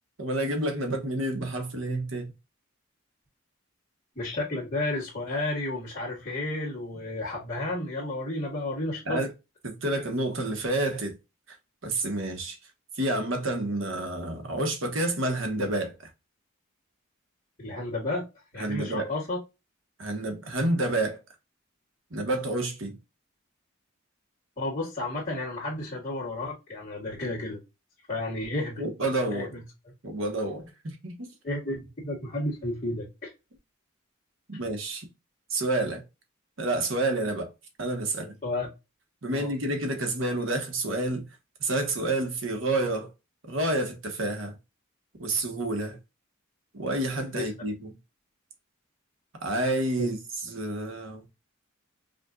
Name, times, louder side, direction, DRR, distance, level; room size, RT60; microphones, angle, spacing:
voice 1, 0.2-2.2 9.1-9.3 9.6-11.1 11.8-12.6 13.0-16.0 18.6-19.1 20.0-21.2 22.1-23.0 28.8-29.5 30.0-31.3 34.5-35.1 35.5-36.0 36.6-37.5 37.8-38.4 39.2-41.2 41.6-43.1 43.5-44.5 45.2-46.0 46.7-47.9 49.4-50.2 50.4-51.2, right 2 dB, 70° right, 1.2 m, -29 dB
voice 2, 4.1-9.2 17.6-18.2 18.5-19.4 24.6-27.6 28.1-28.8 29.3-29.6 31.4-33.3 38.4-38.7 39.3-39.5 47.3-47.5 50.0-50.1, left 2 dB, 35° left, 1.5 m, -32 dB
5.2 x 2.5 x 2.4 m
head